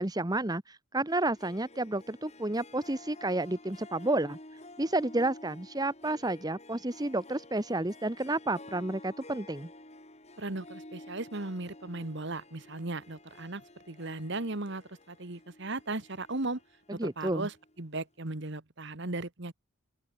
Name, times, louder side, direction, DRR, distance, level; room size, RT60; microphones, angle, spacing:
voice 1, 0.0-4.4 4.8-9.7 16.9-17.5, right 2 dB, 15° right, 1.0 m, -31 dB
Harp, 1.1-17.9, left 1 dB, 30° left, 6.0 m, -51 dB
voice 2, 10.4-13.6 13.9-14.8 15.1-16.6 17.0-19.5, right 2 dB, 55° right, 1.6 m, -36 dB
open air
head